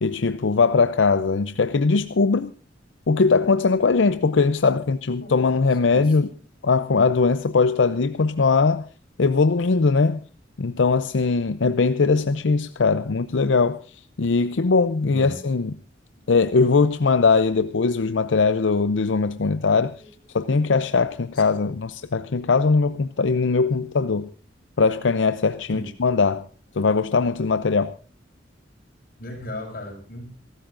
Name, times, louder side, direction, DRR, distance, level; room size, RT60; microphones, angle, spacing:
voice 1, 0.0-2.5 3.1-6.3 6.6-8.9 9.2-10.2 10.6-15.7 16.3-19.9 20.3-24.3 24.8-26.5 26.8-27.9, left 4 dB, 80° left, 0.6 m, -20 dB
voice 2, 5.7-6.4 15.0-15.4 20.0-20.1 21.3-21.7 25.7-25.9 29.2-30.3, left 1 dB, 55° left, 6.0 m, -37 dB
27.5 x 13.5 x 2.6 m
head